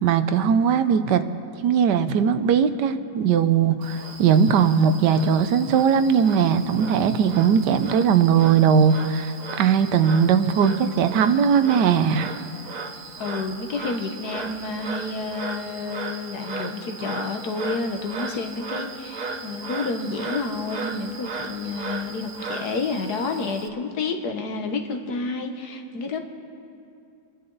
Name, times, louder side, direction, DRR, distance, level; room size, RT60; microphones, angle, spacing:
voice 1, 0.0-1.2 1.6-12.3, right 7 dB, 80° right, 10 dB, 1.3 m, -19 dB
Frog, 3.8-23.7, right 4 dB, 60° right, 0.4 m, -36 dB
voice 2, 13.2-26.2, left 3 dB, 65° left, 5 dB, 1.6 m, -29 dB
28.5 x 11.0 x 3.9 m, 2.5 s
omnidirectional pair, 1.8 m